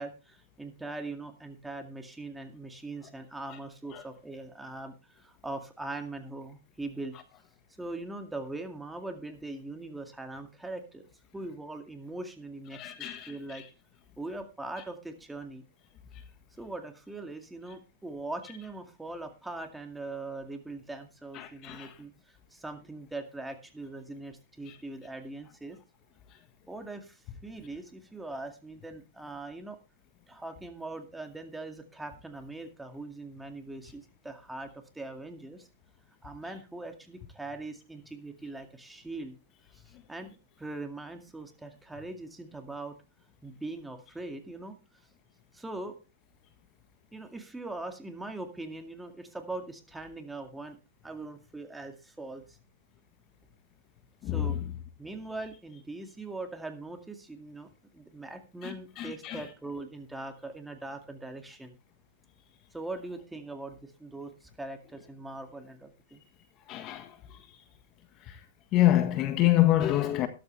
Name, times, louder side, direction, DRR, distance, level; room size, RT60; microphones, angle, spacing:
voice 1, 0.0-7.2 7.8-11.1 11.3-13.6 14.2-15.6 16.6-25.8 26.7-29.8 30.3-35.7 36.2-39.4 39.7-43.0 43.4-44.8 45.5-46.0 47.1-50.8 51.0-52.6 54.2-54.6 55.0-61.8 62.7-66.2, right 2 dB, 5° right, 2.1 m, -41 dB
voice 2, 12.7-13.6 21.3-21.9 54.2-54.5 58.6-59.4 66.7-67.2 68.3-68.4 68.7-70.3, left 14 dB, 40° left, 1.5 m, -27 dB
13.0 x 12.0 x 3.3 m
hypercardioid pair, 125°, 0 cm